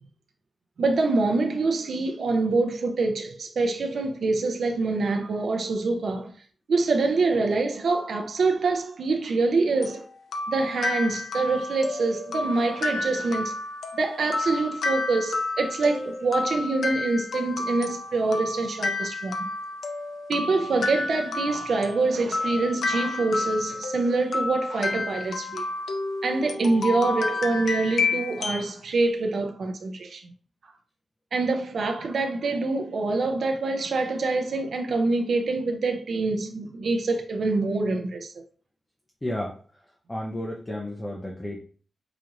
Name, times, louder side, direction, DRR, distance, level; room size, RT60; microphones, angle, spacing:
voice 1, 0.8-6.3 6.7-10.0 10.5-13.5 13.9-19.5 20.3-25.6 26.2-30.2 31.3-38.3, right 3 dB, 65° right, 0.5 m, -25 dB
sound 1, 9.8-28.7, left 3 dB, 75° left, 0.5 m, -30 dB
voice 2, 39.2-39.6 40.1-41.6, left 1 dB, 15° left, 0.6 m, -32 dB
5.0 x 2.5 x 2.9 m
wide cardioid pair, 145°, 0 cm